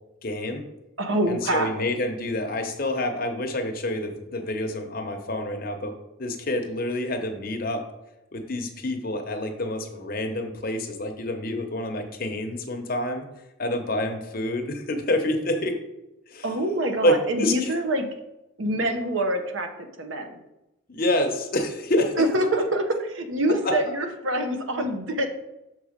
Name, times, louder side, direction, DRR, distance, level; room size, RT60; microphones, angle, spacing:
voice 1, 0.2-0.6 1.3-7.8 8.3-13.2 13.6-15.7 16.3-16.5 17.0-17.7 20.9-22.2 23.6-23.7, left 1 dB, 45° left, 4 dB, 0.8 m, -27 dB
voice 2, 1.0-1.8 16.4-18.1 18.6-19.7 20.0-20.4 22.2-25.3, right 1 dB, 75° right, 6 dB, 0.9 m, -25 dB
6.6 x 4.1 x 5.1 m, 0.92 s
head